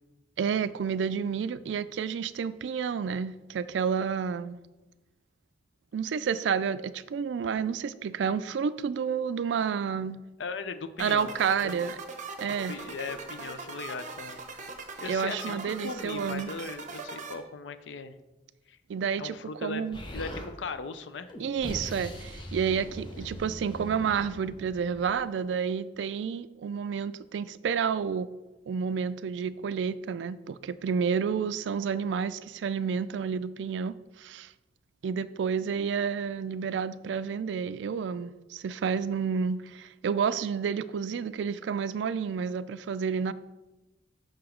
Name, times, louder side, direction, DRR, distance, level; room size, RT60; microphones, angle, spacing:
voice 1, 0.4-4.6 5.9-10.2 11.0-12.0 12.4-12.7 15.1-16.5 18.9-19.4 19.6-20.0 21.4-28.3 28.7-34.5 35.0-43.3, right 6 dB, 75° right, 15 dB, 0.3 m, -30 dB
voice 2, 10.4-11.3 11.6-11.7 12.4-14.7 15.0-18.2 18.7-18.8 19.2-19.8 20.1-21.3, left 4 dB, 80° left, 11 dB, 0.5 m, -38 dB
sound 1, 11.0-17.3, right 3 dB, 45° right, 0.8 m, -41 dB
Explosion, 19.9-20.5 21.3-25.1, equal, 25° left, 0.9 m, -40 dB
6.1 x 4.8 x 5.1 m, 1.1 s
head